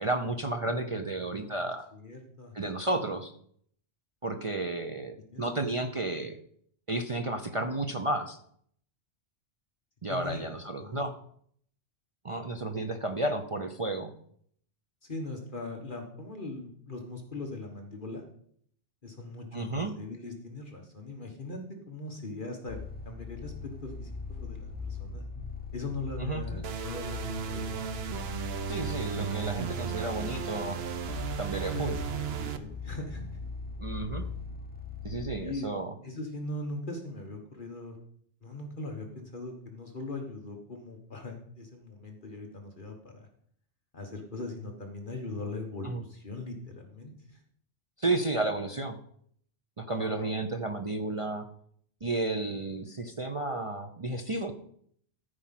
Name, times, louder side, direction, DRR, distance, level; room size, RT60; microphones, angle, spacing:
voice 1, 0.0-1.8 2.5-3.3 4.2-6.4 6.9-8.4 10.0-11.1 12.2-14.1 19.5-19.9 26.2-26.6 28.7-30.8 31.4-32.0 33.8-34.3 35.0-36.0 45.8-46.0 48.0-49.0 49.8-51.5 52.0-54.5, right 2 dB, 35° right, 5 dB, 0.6 m, -32 dB
voice 2, 1.2-1.5 1.9-2.5 5.3-5.4 10.1-10.5 10.8-11.1 15.1-18.2 19.0-22.8 23.0-25.2 25.7-27.7 29.2-29.3 31.7-33.4 35.4-35.7 36.0-38.0 38.4-43.3 43.9-47.4 49.9-50.3, left 2 dB, 45° left, 2 dB, 1.5 m, -40 dB
sound 1, 22.7-35.4, left 3 dB, 10° left, 1.1 m, -40 dB
sound 2, 26.6-32.6, right 8 dB, 60° right, 0.9 m, -35 dB
13.5 x 4.9 x 5.8 m, 0.64 s
omnidirectional pair, 1.2 m